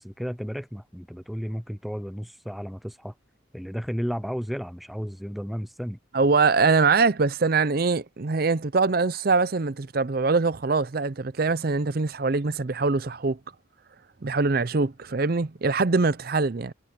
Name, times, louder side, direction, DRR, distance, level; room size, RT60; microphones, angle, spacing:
voice 1, 0.0-3.1 3.5-6.0, equal, ahead, 0.3 m, -33 dB
voice 2, 6.1-13.4 14.2-16.7, right 4 dB, 45° right, 0.6 m, -23 dB
head